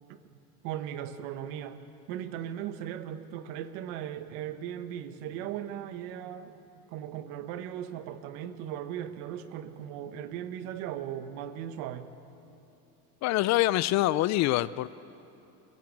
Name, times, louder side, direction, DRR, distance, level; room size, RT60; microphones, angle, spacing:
voice 1, 0.6-1.8 2.1-6.6 6.9-12.1, right 10 dB, 70° right, 10 dB, 1.3 m, -38 dB
voice 2, 13.2-14.9, left 16 dB, 45° left, 18 dB, 0.4 m, -25 dB
22.5 x 15.0 x 8.6 m, 2.9 s
supercardioid pair, 130°, 39 cm